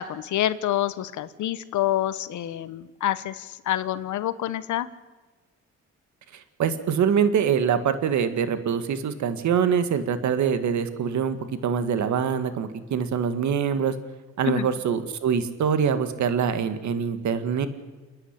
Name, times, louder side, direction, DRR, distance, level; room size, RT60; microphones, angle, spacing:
voice 1, 0.0-4.9 14.4-14.7, left 12 dB, 75° left, 14 dB, 1.2 m, -27 dB
voice 2, 6.6-11.4 11.6-13.9 14.4-17.7, right 7 dB, 70° right, 10 dB, 1.9 m, -24 dB
29.5 x 10.0 x 9.9 m, 1.3 s
cardioid pair, 90°, 30 cm